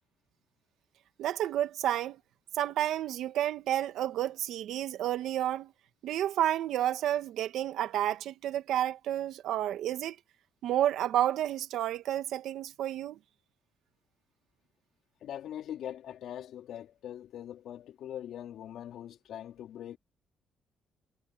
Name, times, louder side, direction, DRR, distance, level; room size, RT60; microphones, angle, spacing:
voice 1, 1.2-2.2 2.5-5.7 6.0-10.2 10.6-13.2, right 12 dB, 80° right, 2.0 m, -30 dB
voice 2, 15.2-20.0, left 11 dB, 75° left, 4.5 m, -42 dB
cardioid pair, 90°, 0 cm